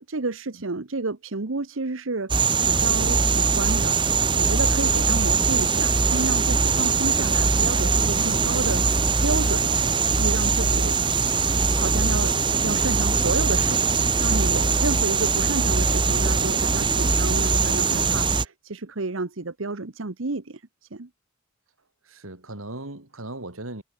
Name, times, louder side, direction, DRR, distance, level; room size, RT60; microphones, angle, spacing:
voice 1, 0.0-4.0 4.4-11.1 11.7-20.6 20.9-21.1, right 3 dB, 70° right, 1.1 m, -31 dB
sound 1, 2.3-18.4, right 4 dB, 25° right, 1.2 m, -21 dB
voice 2, 22.0-23.8, right 2 dB, 85° right, 3.4 m, -38 dB
head